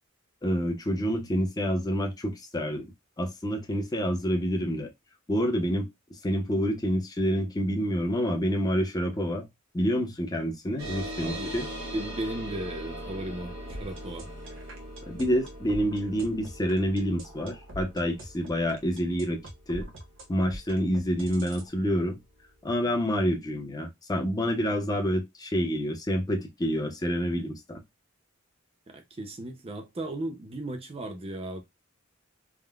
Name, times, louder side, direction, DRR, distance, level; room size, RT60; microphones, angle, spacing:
voice 1, 0.4-2.9 3.2-4.9 5.3-5.9 6.2-9.5 9.7-11.7 15.1-19.4 19.7-19.9 20.3-22.2 22.6-27.8, equal, 20° left, 0.6 m, -28 dB
sound 1, 10.8-21.7, right 1 dB, 85° right, 1.3 m, -41 dB
voice 2, 11.2-11.5 11.9-14.3 28.9-31.6, right 1 dB, 30° right, 0.6 m, -36 dB
sound 2, 13.7-21.7, right 1 dB, 65° right, 0.9 m, -43 dB
3.6 x 2.0 x 2.3 m
head